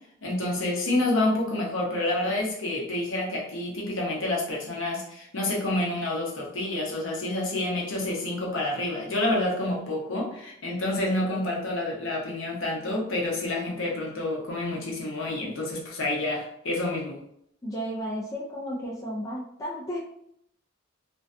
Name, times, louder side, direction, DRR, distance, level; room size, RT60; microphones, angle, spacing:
voice 1, 0.2-17.2, left 2 dB, 70° left, -2 dB, 0.7 m, -28 dB
voice 2, 17.6-20.0, equal, 15° left, -4 dB, 0.3 m, -33 dB
2.5 x 2.2 x 2.4 m, 0.72 s
head